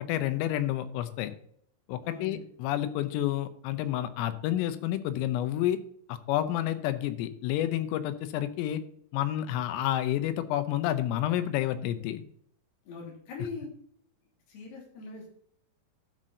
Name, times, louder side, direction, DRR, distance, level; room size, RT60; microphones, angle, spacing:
voice 1, 0.0-1.3 1.9-5.8 6.1-8.8 9.1-12.2, left 12 dB, 90° left, 11 dB, 3.5 m, -29 dB
voice 2, 2.0-2.4 12.9-13.7 14.5-15.3, left 4 dB, 55° left, -1 dB, 4.8 m, -41 dB
12.5 x 5.9 x 4.0 m, 0.64 s
omnidirectional pair, 5.8 m